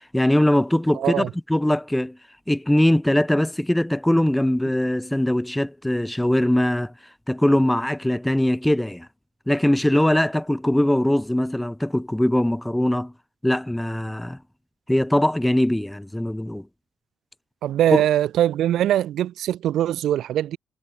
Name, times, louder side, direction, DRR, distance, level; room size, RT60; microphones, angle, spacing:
voice 1, 0.1-2.2 2.5-6.9 7.3-9.1 9.5-13.1 13.4-14.4 14.9-16.7, left 1 dB, 5° left, 2.1 m, -21 dB
voice 2, 0.9-1.3 17.6-20.6, right 12 dB, 75° right, 2.2 m, -22 dB
cardioid pair, 90°, 0 cm